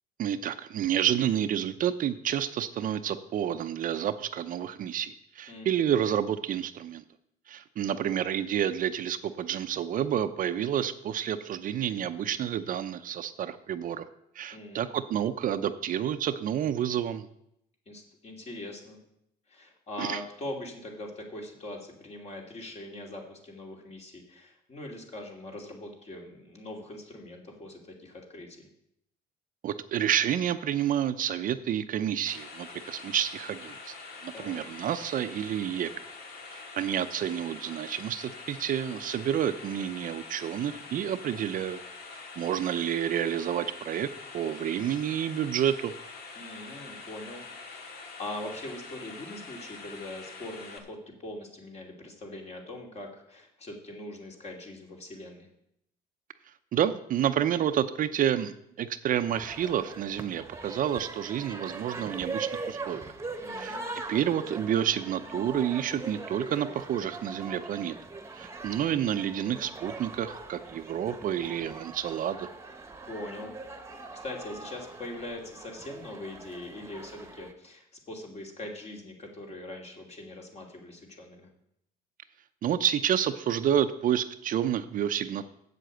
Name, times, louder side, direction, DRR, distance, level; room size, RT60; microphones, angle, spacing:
voice 1, 0.2-7.0 7.5-14.1 14.4-17.3 20.0-20.2 29.6-33.9 34.2-36.1 36.5-41.8 42.1-44.1 44.3-45.9 56.7-63.1 63.6-63.8 64.1-67.9 68.4-72.5 82.6-85.5, right 10 dB, 55° right, 10 dB, 0.6 m, -29 dB
voice 2, 5.5-5.8 14.5-14.9 17.9-19.0 19.5-28.7 34.3-34.6 46.3-47.8 48.2-55.5 63.4-63.9 73.1-73.5 73.9-81.5, left 1 dB, 40° left, 1 dB, 2.8 m, -42 dB
sound 1, 32.3-50.8, left 4 dB, 65° left, 1.8 m, -45 dB
sound 2, 59.3-77.5, right 3 dB, 15° right, 1.1 m, -41 dB
7.8 x 7.7 x 7.8 m, 0.77 s
cardioid pair, 110°, 17 cm